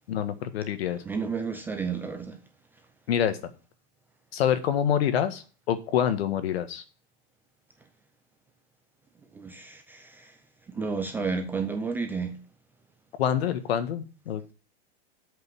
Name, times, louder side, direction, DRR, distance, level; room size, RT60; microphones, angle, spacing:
voice 1, 0.1-1.0 3.1-3.4 4.3-6.8 13.2-14.5, left 9 dB, 75° left, 1.6 m, -26 dB
voice 2, 1.1-2.4 9.3-10.3 10.7-12.4, right 5 dB, 5° right, 0.4 m, -31 dB
7.9 x 5.5 x 6.9 m
supercardioid pair, 160°, 32 cm